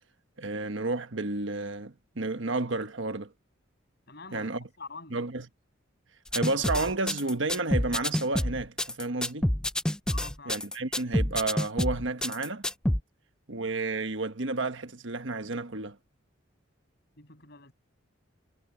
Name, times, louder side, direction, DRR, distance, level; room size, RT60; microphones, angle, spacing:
voice 1, 0.4-3.3 4.3-4.7 5.1-5.4 6.3-9.5 10.5-12.7 13.5-16.0, right 3 dB, 65° right, 1.3 m, -31 dB
voice 2, 4.1-5.3 10.1-10.6 17.1-17.7, left 4 dB, 55° left, 7.2 m, -46 dB
sound 1, 6.3-13.0, left 1 dB, 5° left, 0.3 m, -28 dB
head